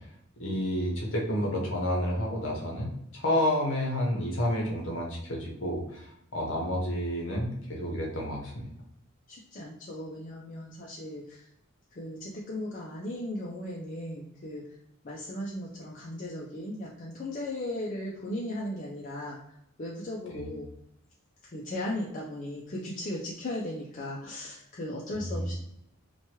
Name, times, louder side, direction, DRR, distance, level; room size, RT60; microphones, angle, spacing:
voice 1, 0.4-2.9 3.1-6.1 6.3-8.6 20.3-20.5 25.2-25.5, equal, 60° left, -2 dB, 0.8 m, -30 dB
voice 2, 9.3-11.5 11.9-14.6 15.0-19.4 19.8-20.7 21.5-25.5, left 1 dB, 35° left, -4 dB, 0.4 m, -37 dB
2.9 x 2.2 x 2.9 m, 0.76 s
head